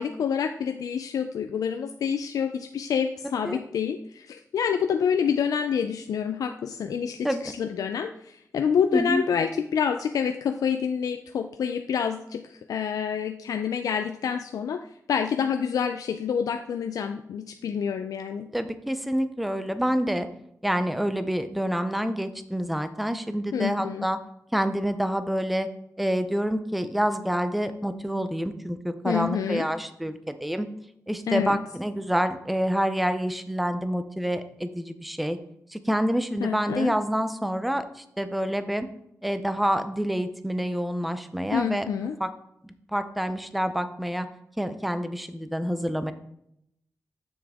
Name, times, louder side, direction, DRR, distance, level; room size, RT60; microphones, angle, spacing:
voice 1, 0.0-14.8 15.1-18.5 23.5-24.1 29.0-29.7 31.3-31.6 36.4-37.0 41.5-42.1, left 7 dB, 85° left, 7 dB, 0.4 m, -27 dB
voice 2, 8.9-9.2 18.5-20.3 20.6-24.2 24.5-25.7 26.0-30.7 31.1-35.4 35.7-38.9 39.2-41.9 42.2-42.3 42.6-44.3 44.6-46.1, equal, ahead, 10 dB, 0.4 m, -27 dB
7.2 x 6.1 x 3.5 m, 0.77 s
wide cardioid pair, 175°, 6 cm